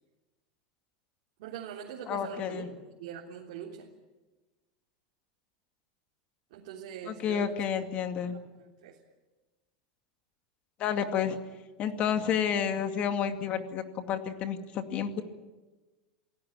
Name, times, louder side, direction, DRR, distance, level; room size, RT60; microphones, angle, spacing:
voice 1, 1.4-2.7 3.0-3.9 6.5-7.5 8.3-9.0, right 9 dB, 70° right, -2 dB, 3.5 m, -43 dB
voice 2, 2.1-2.8 7.1-8.4 10.8-11.4 11.8-15.2, left 8 dB, 35° left, 7 dB, 2.3 m, -30 dB
27.5 x 17.5 x 8.8 m, 1.2 s
supercardioid pair, 150°, 4 cm